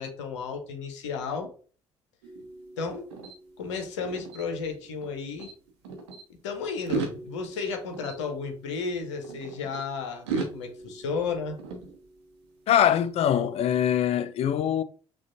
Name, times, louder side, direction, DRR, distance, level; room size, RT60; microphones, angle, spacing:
voice 1, 0.0-1.5 2.8-3.1 3.6-5.5 6.4-11.6, left 5 dB, 70° left, 0.7 m, -33 dB
sound 1, 2.2-5.1 5.4-6.2 6.7-9.8 10.3-12.5, right 5 dB, 70° right, 0.8 m, -38 dB
voice 2, 12.7-14.8, left 10 dB, 45° left, 0.4 m, -23 dB
6.0 x 2.3 x 2.6 m
figure-of-eight pair, 50°, 15 cm